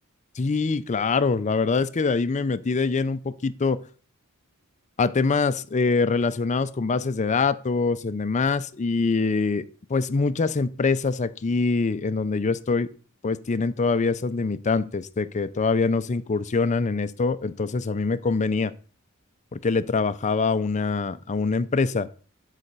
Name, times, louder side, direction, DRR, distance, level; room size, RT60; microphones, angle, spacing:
voice 1, 0.4-3.8 5.0-9.6 9.9-12.9 13.2-18.7 19.5-22.1, left 4 dB, 30° left, 15 dB, 0.4 m, -24 dB
8.6 x 4.1 x 6.7 m, 0.42 s
head